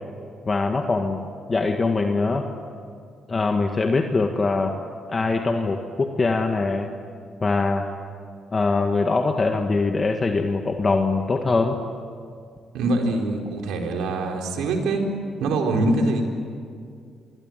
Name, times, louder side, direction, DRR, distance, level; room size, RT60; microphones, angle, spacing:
voice 1, 0.5-1.2 1.5-2.5 3.3-4.7 5.1-6.9 7.4-7.9 8.5-11.8, left 3 dB, 30° left, 4 dB, 1.8 m, -22 dB
voice 2, 12.7-15.0 15.4-16.3, right 2 dB, 85° right, 2 dB, 4.5 m, -23 dB
27.5 x 22.5 x 9.2 m, 2.2 s
cardioid pair, 90°, 0 cm